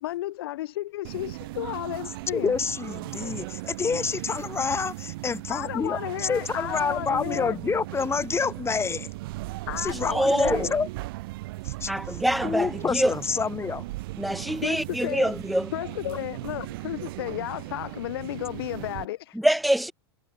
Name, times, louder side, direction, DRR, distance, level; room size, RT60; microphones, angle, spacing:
voice 1, 0.0-2.6 5.5-7.6 9.7-10.8 14.6-15.3 15.7-19.4, left 15 dB, 65° left, 0.8 m, -33 dB
sound 1, 1.0-19.1, right 20 dB, 60° right, 1.0 m, -37 dB
voice 2, 2.3-9.1 9.8-10.9 11.6-13.9, left 5 dB, 20° left, 1.8 m, -28 dB
voice 3, 10.1-10.7 11.9-13.1 14.2-15.7 19.4-19.9, right 1 dB, ahead, 0.5 m, -25 dB
hypercardioid pair, 90°, 13 cm